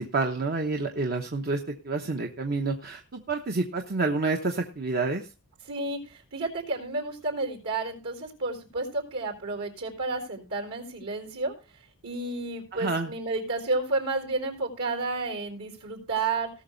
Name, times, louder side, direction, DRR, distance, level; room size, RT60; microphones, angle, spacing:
voice 1, 0.0-1.6 1.8-5.3 12.7-13.1, right 3 dB, 45° right, 3 dB, 1.0 m, -28 dB
voice 2, 5.7-11.5 12.0-16.5, right 3 dB, 70° right, 3 dB, 4.2 m, -31 dB
18.5 x 6.3 x 3.9 m, 0.34 s
head